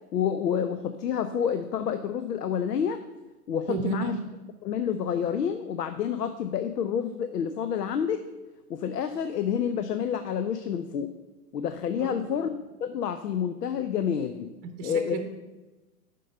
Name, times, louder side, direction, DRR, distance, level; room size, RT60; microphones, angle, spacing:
voice 1, 0.1-3.0 3.5-4.2 4.6-8.3 8.7-11.1 11.5-12.5 12.8-14.5 14.8-15.2, left 8 dB, 85° left, 10 dB, 0.7 m, -28 dB
voice 2, 3.7-4.2 12.0-12.4 14.8-15.2, right 5 dB, 25° right, 6 dB, 0.7 m, -32 dB
7.5 x 5.3 x 6.7 m, 1.1 s
hypercardioid pair, 130°, 46 cm